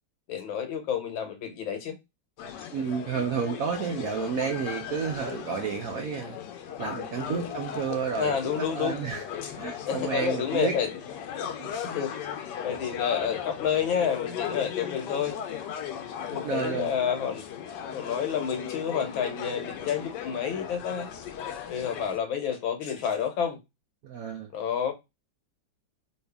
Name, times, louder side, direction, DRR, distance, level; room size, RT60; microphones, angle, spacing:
voice 1, 0.3-2.0 7.2-7.4 8.2-9.0 9.4-9.5 9.9-10.9 11.7-12.1 12.6-15.4 16.3-17.4 17.9-21.1 21.7-23.6 24.5-24.9, left 8 dB, 90° left, 1.7 m, -29 dB
sound 1, 2.4-22.2, left 9 dB, 70° left, 1.1 m, -37 dB
voice 2, 2.7-6.4 6.8-9.2 9.6-10.8 11.6-11.7 16.4-16.9 24.0-24.5, right 6 dB, 75° right, 0.8 m, -31 dB
3.2 x 2.7 x 3.3 m
omnidirectional pair, 2.1 m